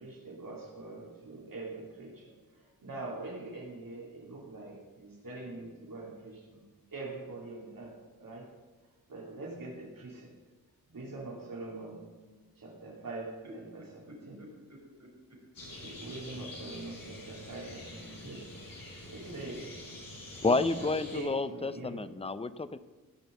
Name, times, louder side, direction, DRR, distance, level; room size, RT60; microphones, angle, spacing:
voice 1, 0.0-6.6 6.9-8.5 9.1-10.3 10.9-12.1 12.6-14.4 15.8-18.5 19.1-19.6 20.4-22.1, right 2 dB, 70° right, -2 dB, 3.0 m, -43 dB
voice 2, 13.8-15.7 19.2-19.6, equal, 50° right, -1 dB, 4.7 m, -51 dB
sound 1, 15.5-21.2, left 2 dB, 70° left, 5.0 m, -46 dB
voice 3, 20.4-22.8, left 3 dB, 15° left, 14 dB, 0.5 m, -30 dB
16.5 x 6.2 x 8.0 m, 1.3 s
wide cardioid pair, 105°, 35 cm